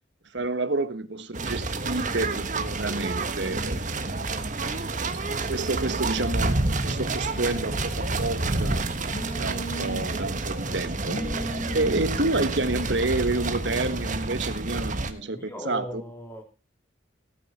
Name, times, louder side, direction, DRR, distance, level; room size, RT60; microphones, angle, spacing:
voice 1, 0.3-4.1 5.1-8.9 9.4-11.2 11.7-16.0, right 2 dB, 65° right, 1.4 m, -29 dB
sound 1, 1.3-15.1, right 2 dB, 40° right, 1.5 m, -29 dB
Telephone, 5.8-13.9, equal, 40° left, 2.7 m, -38 dB
voice 2, 15.1-16.4, equal, 10° left, 3.3 m, -38 dB
17.5 x 9.1 x 4.3 m
head